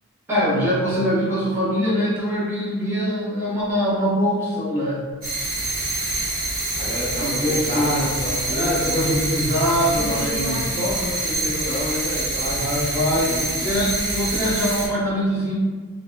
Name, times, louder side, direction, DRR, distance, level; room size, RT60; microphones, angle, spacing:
voice 1, 0.3-5.0 7.2-8.1 8.5-10.6 12.5-13.3 13.6-15.5, equal, 10° right, -10 dB, 0.9 m, -23 dB
sound 1, 5.2-14.9, right 2 dB, 40° right, 1.2 m, -26 dB
voice 2, 6.8-9.3 9.9-13.7, left 1 dB, 35° left, -7 dB, 0.4 m, -30 dB
3.6 x 2.1 x 2.2 m, 1.4 s
head